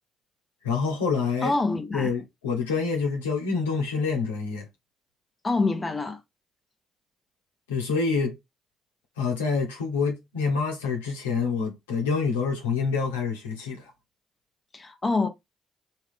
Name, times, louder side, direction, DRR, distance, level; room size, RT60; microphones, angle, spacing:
voice 1, 0.6-1.5 1.9-4.7 7.7-8.4 9.2-13.9, left 5 dB, 90° left, 1.2 m, -27 dB
voice 2, 1.4-2.1 5.4-6.2 14.7-15.3, left 3 dB, 30° left, 1.1 m, -26 dB
3.3 x 3.2 x 3.5 m
hypercardioid pair, 45°, 0 cm